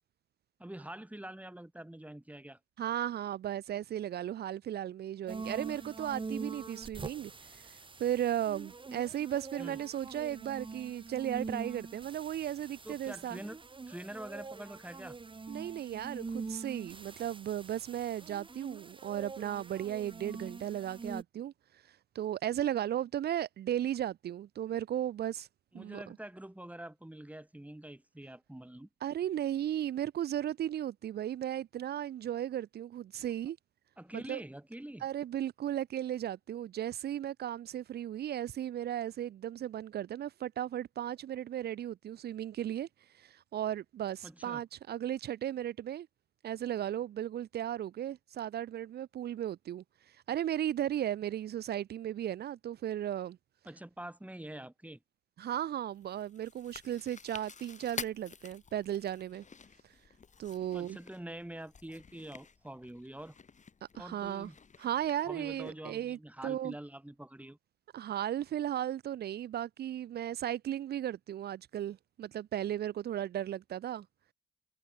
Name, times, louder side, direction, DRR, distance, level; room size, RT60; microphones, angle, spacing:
voice 1, 0.6-2.6 9.6-9.8 12.8-13.6 13.9-15.2 25.7-28.9 34.0-35.1 44.2-44.6 53.7-55.0 60.7-63.4 64.0-64.6 65.2-67.6, right 1 dB, 10° right, 7.5 m, -45 dB
voice 2, 2.8-13.4 15.5-21.5 21.9-25.5 25.7-26.2 29.0-33.6 34.1-34.4 35.0-42.9 43.1-46.1 46.4-53.4 55.4-59.4 60.4-61.0 63.9-64.5 64.8-66.7 67.9-74.0, right 11 dB, 70° right, 1.5 m, -36 dB
sound 1, 5.3-21.2, right 4 dB, 30° right, 1.6 m, -44 dB
Chewing mastication, 56.0-65.7, left 5 dB, 45° left, 5.5 m, -49 dB
supercardioid pair, 60°, 17 cm